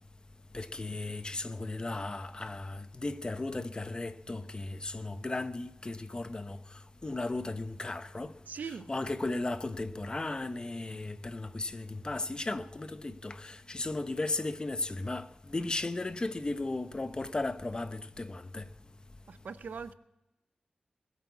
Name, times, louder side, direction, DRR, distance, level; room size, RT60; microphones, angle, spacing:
voice 1, 0.5-6.6 7.0-8.3 8.9-18.7, left 2 dB, 30° left, 0.9 m, -35 dB
voice 2, 8.5-8.9 19.3-19.9, right 6 dB, 85° right, 0.7 m, -41 dB
21.0 x 8.3 x 8.3 m
wide cardioid pair, 90°, 3 cm